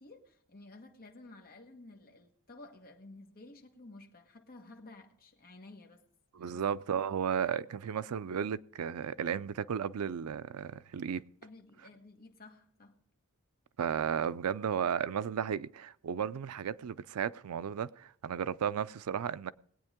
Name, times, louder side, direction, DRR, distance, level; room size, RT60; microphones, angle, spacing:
voice 1, 0.0-6.0 6.4-7.1 11.4-12.9, left 2 dB, 45° left, 1.5 m, -53 dB
voice 2, 6.3-11.2 13.8-19.5, right 7 dB, 90° right, 0.4 m, -34 dB
20.5 x 8.8 x 3.6 m
head